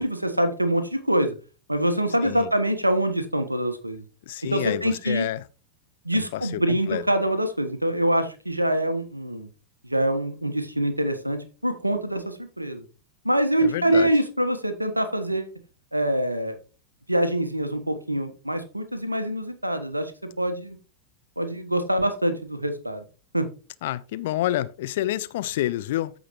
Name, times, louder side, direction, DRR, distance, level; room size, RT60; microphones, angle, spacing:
voice 1, 0.0-1.3 1.7-4.0 4.5-5.3 6.0-9.5 9.9-12.8 13.2-15.5 15.9-16.6 17.1-20.1 20.4-20.8 21.4-23.0 23.3-23.5, right 1 dB, 85° right, 1.2 m, -25 dB
voice 2, 4.3-5.4 6.2-7.0 13.6-14.1 23.8-26.1, left 14 dB, 55° left, 0.6 m, -28 dB
14.5 x 5.0 x 3.1 m
figure-of-eight pair, 90°, 0 cm